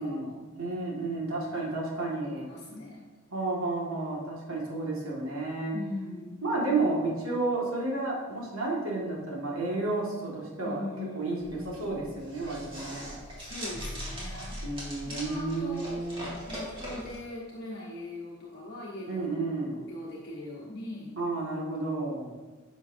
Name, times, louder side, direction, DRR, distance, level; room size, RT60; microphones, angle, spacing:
voice 1, 0.0-0.4 2.2-3.0 5.7-6.4 10.6-11.9 13.4-14.6 15.1-16.0 16.5-19.4 19.9-21.1, left 2 dB, 50° left, -6 dB, 1.2 m, -40 dB
voice 2, 0.5-2.5 3.3-5.7 6.4-10.8 11.1-13.2 14.6-16.3 19.1-19.8 21.2-22.3, right 2 dB, 80° right, -3 dB, 1.9 m, -31 dB
sound 1, 11.4-17.2, equal, 25° right, 2.1 m, -40 dB
10.5 x 6.1 x 2.7 m, 1.3 s
head